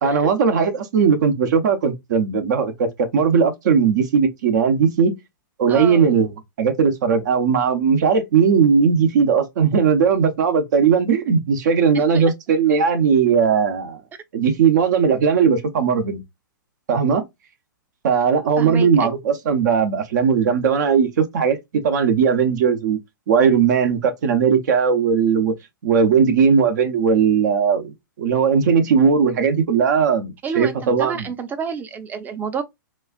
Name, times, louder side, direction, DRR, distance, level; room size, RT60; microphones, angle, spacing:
voice 1, 0.0-5.1 5.6-6.3 6.6-14.0 14.3-16.2 16.9-17.2 18.0-23.0 23.3-25.5 25.8-31.3, right 6 dB, 60° right, 0.8 m, -18 dB
voice 2, 5.7-6.1 11.9-12.2 18.6-19.1 30.4-32.6, right 6 dB, 15° right, 0.6 m, -29 dB
4.1 x 2.4 x 2.4 m
hypercardioid pair, 120°, 11 cm